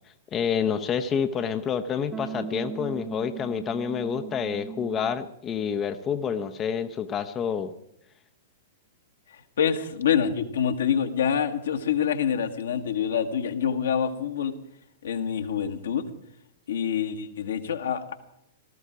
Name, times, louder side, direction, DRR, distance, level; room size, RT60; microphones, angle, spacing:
voice 1, 0.3-7.7, left 7 dB, 25° left, 8 dB, 0.8 m, -28 dB
sound 1, 2.1-5.3, right 7 dB, 20° right, 0.9 m, -38 dB
voice 2, 9.6-14.5 15.0-16.0 16.7-18.1, left 8 dB, 65° left, 6 dB, 1.6 m, -26 dB
18.0 x 13.5 x 5.0 m, 0.78 s
figure-of-eight pair, 105°, 0 cm